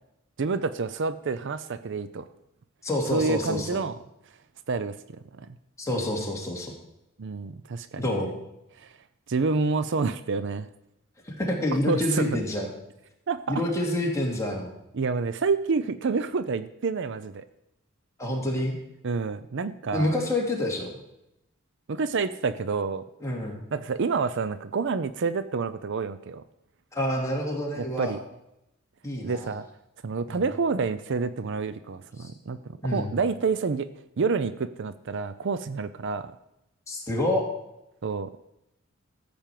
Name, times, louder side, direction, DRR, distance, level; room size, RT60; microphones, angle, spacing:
voice 1, 0.4-2.3 3.1-4.0 4.7-5.0 5.4-5.5 7.2-8.0 8.8-8.9 9.3-10.7 11.9-12.4 13.3-13.6 14.9-17.5 19.0-20.1 21.9-23.0 23.7-26.4 27.8-28.2 29.2-29.7 30.0-32.6 32.9-33.9 34.2-36.3 38.0-38.3, right 4 dB, 60° right, 13 dB, 0.5 m, -28 dB
voice 2, 2.8-3.8 5.8-6.7 8.0-8.3 11.3-12.7 13.5-14.7 18.2-18.7 19.9-20.9 23.2-23.6 26.9-28.1 29.0-29.6 30.3-30.4 32.2-32.3 32.8-33.1 36.9-37.4, left 1 dB, 15° left, -2 dB, 2.7 m, -28 dB
13.5 x 5.2 x 7.6 m, 0.85 s
head